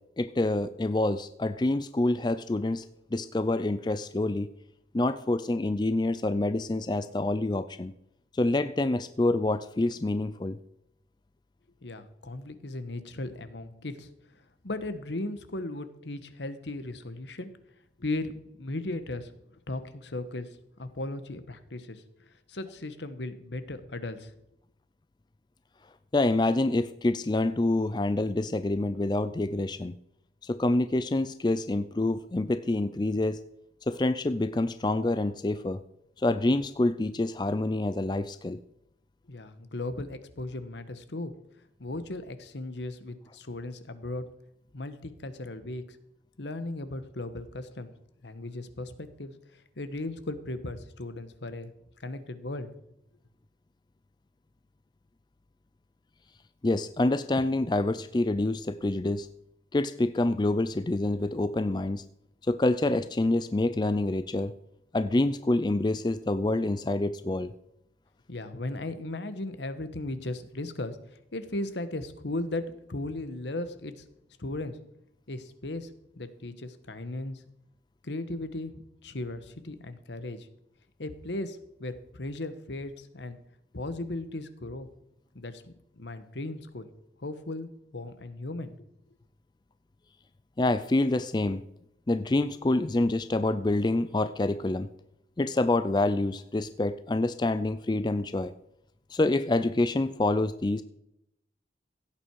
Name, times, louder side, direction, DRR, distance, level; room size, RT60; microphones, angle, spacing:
voice 1, 0.2-2.8 3.1-4.5 4.9-7.9 8.3-10.6 26.1-29.9 30.4-33.4 33.9-35.8 36.2-38.6 56.6-59.3 59.7-62.0 62.5-64.5 64.9-67.5 90.6-91.6 92.1-94.9 95.4-98.5 99.1-100.8, left 2 dB, 25° left, 12 dB, 0.4 m, -27 dB
voice 2, 11.8-14.1 14.6-17.5 18.0-19.3 19.7-20.5 20.8-22.0 22.5-24.3 39.3-41.3 41.8-44.3 44.7-45.8 46.4-47.9 48.2-49.3 49.8-51.7 52.0-52.7 68.3-71.0 71.3-74.0 74.4-74.8 75.3-75.9 76.2-77.4 78.0-80.5 81.0-83.4 83.7-84.9 85.3-86.9 87.2-88.7, left 2 dB, 80° left, 11 dB, 1.2 m, -36 dB
16.0 x 8.8 x 4.7 m, 0.79 s
head